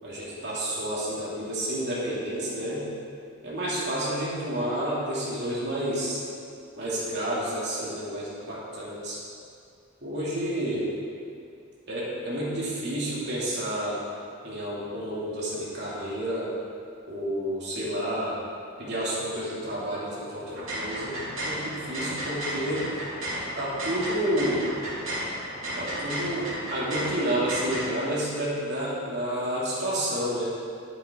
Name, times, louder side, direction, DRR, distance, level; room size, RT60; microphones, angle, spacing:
voice 1, 0.0-2.9 3.4-6.2 6.8-9.2 10.0-10.9 11.9-14.0 14.4-16.5 17.1-18.4 18.8-23.0 23.5-24.7 25.7-30.4, right 1 dB, 55° right, -7 dB, 2.8 m, -30 dB
sound 1, 20.4-27.8, equal, 80° right, 2.7 m, -33 dB
11.0 x 8.2 x 3.8 m, 2.3 s
head